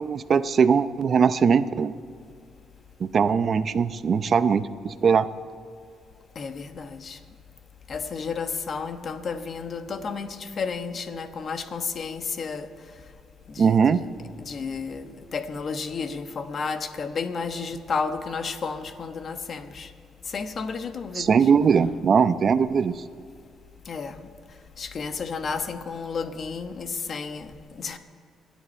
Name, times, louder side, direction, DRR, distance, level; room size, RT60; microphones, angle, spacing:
voice 1, 0.0-1.9 3.0-5.3 13.6-14.0 21.1-23.0, right 6 dB, 50° right, 0.6 m, -20 dB
voice 2, 6.3-7.2 7.9-12.7 13.5-13.8 14.4-19.9 20.3-21.4 23.9-24.3 24.8-28.0, left 5 dB, 50° left, 1.2 m, -32 dB
27.0 x 10.5 x 4.4 m
cardioid pair, 90°, 0 cm